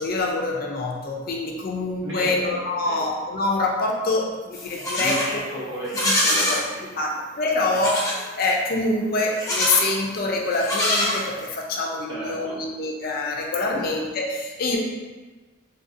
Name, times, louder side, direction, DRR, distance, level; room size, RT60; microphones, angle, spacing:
voice 1, 0.0-5.4 6.0-6.1 6.5-6.6 6.9-14.8, left 2 dB, 45° left, -1 dB, 0.4 m, -25 dB
voice 2, 2.0-2.5 2.8-3.1 5.0-6.8 12.1-12.6 13.7-13.8, equal, 65° right, -8 dB, 1.3 m, -33 dB
Livestock farm animals working animals, 4.5-5.3 5.8-6.6 7.7-8.2 9.3-10.0 10.5-11.6, left 1 dB, 15° left, 0.8 m, -24 dB
3.8 x 2.6 x 2.5 m, 1.3 s
head